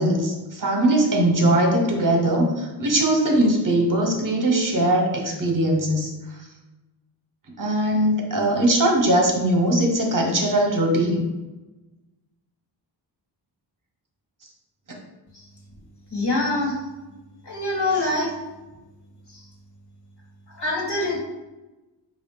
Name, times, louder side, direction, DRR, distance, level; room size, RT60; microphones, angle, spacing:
voice 1, 0.0-6.1 7.6-11.2, right 1 dB, 45° right, 1 dB, 0.8 m, -20 dB
voice 2, 16.1-16.8 17.4-18.3 19.3-19.4 20.5-21.2, left 2 dB, 60° left, -2 dB, 1.4 m, -24 dB
4.9 x 2.4 x 3.6 m, 1.1 s
wide cardioid pair, 125°, 44 cm